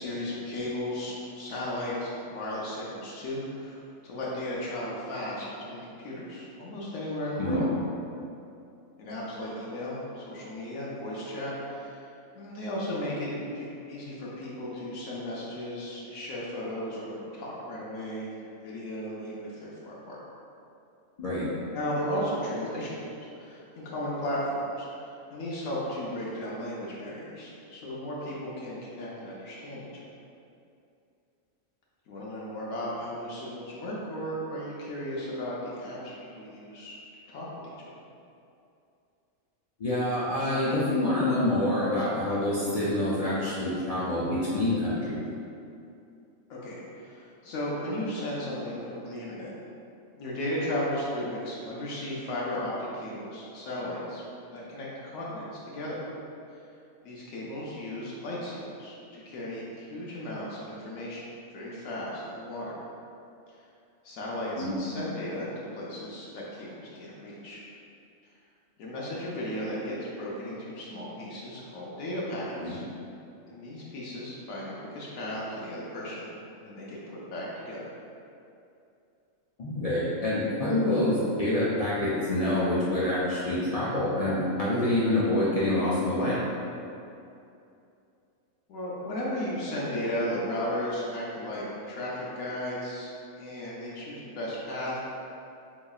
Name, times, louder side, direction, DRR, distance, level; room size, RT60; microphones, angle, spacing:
voice 1, 0.0-7.7 9.0-12.1 12.3-20.2 21.7-23.1 23.4-30.1 32.1-37.0 37.3-38.0 46.5-49.5 50.2-54.2 54.5-56.0 56.5-56.6 57.0-61.2 61.5-62.7 64.0-67.6 68.8-72.8 73.5-76.3 76.6-77.8 88.7-93.1 93.4-95.0, left 1 dB, 85° left, -6 dB, 1.1 m, -35 dB
voice 2, 21.2-21.5 39.8-45.2 64.6-64.8 72.6-72.8 79.6-86.4, left 1 dB, 65° left, -9 dB, 0.3 m, -26 dB
3.7 x 3.0 x 2.3 m, 2.6 s
omnidirectional pair, 1.4 m